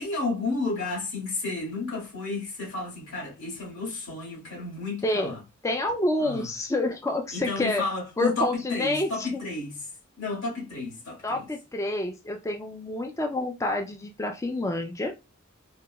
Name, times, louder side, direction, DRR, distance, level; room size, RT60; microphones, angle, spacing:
voice 1, 0.0-5.4 6.2-6.5 7.3-9.7 10.2-11.5, left 3 dB, 80° left, 1.9 m, -32 dB
voice 2, 5.0-5.4 5.6-7.8 8.2-9.3 11.2-15.1, left 2 dB, 15° left, 0.3 m, -28 dB
3.6 x 2.9 x 2.2 m
head